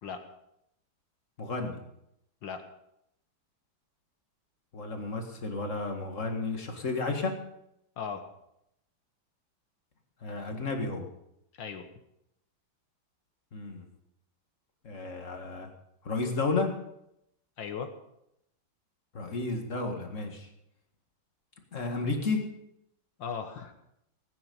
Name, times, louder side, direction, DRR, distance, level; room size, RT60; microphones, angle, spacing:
voice 1, 1.4-1.8 4.7-7.3 10.2-11.1 13.5-13.9 14.8-15.7 16.0-16.7 19.1-20.5 21.7-22.4, left 3 dB, 40° left, 4 dB, 2.1 m, -32 dB
voice 2, 11.6-11.9 17.6-17.9 23.2-23.7, left 6 dB, 70° left, 7 dB, 1.9 m, -37 dB
18.5 x 9.5 x 5.4 m, 0.78 s
omnidirectional pair, 2.2 m